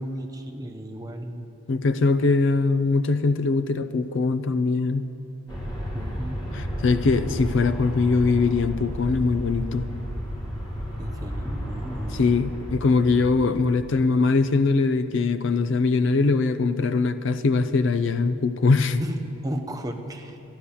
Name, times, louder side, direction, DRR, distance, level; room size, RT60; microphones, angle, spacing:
voice 1, 0.0-1.5 5.9-6.4 11.0-12.2 19.0-20.4, right 1 dB, 15° right, 5 dB, 0.6 m, -35 dB
voice 2, 1.7-5.1 6.5-9.9 12.2-19.0, left 4 dB, 55° left, 11 dB, 0.4 m, -22 dB
Aircraft, 5.5-13.9, equal, 20° left, 1.7 m, -33 dB
13.0 x 10.0 x 6.9 m, 2.8 s
head